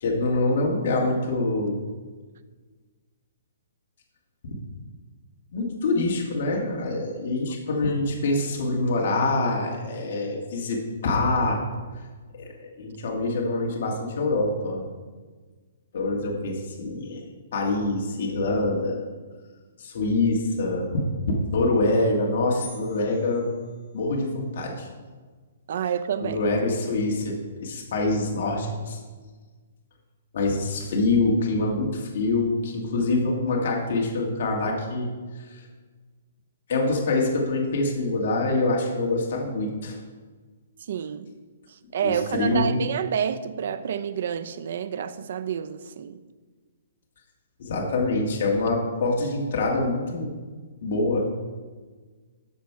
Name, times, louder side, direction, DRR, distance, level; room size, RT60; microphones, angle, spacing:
voice 1, 0.0-1.8 5.5-10.8 11.0-11.6 12.4-14.8 15.9-17.2 17.5-19.1 19.8-20.9 21.5-23.5 23.9-24.9 26.2-29.0 30.3-35.1 35.5-35.6 36.7-40.0 42.0-42.8 47.6-50.3 50.8-51.2, left 2 dB, 50° left, -1 dB, 1.9 m, -25 dB
sound 1, 22.6-24.4, left 5 dB, 25° left, 1.4 m, -46 dB
voice 2, 25.7-26.4 40.8-41.3 41.7-46.2, right 8 dB, 55° right, 13 dB, 0.5 m, -29 dB
13.0 x 5.3 x 4.8 m, 1.4 s
hypercardioid pair, 165°, 0 cm